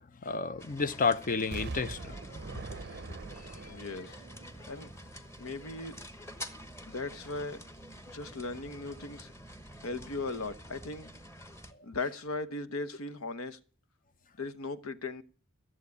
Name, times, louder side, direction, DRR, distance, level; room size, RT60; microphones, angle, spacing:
voice 1, 0.2-3.0, left 4 dB, 40° left, 0.6 m, -32 dB
sound 1, 0.6-11.7, equal, 15° left, 1.2 m, -48 dB
Explosion, 1.5-5.4 5.9-6.0, right 3 dB, 50° right, 0.6 m, -43 dB
voice 2, 3.7-4.2 4.7-4.9 5.4-5.9 6.9-7.6 8.1-9.3 9.8-11.1 11.8-13.6 14.4-15.2, left 3 dB, 75° left, 1.1 m, -38 dB
14.5 x 7.5 x 9.6 m
head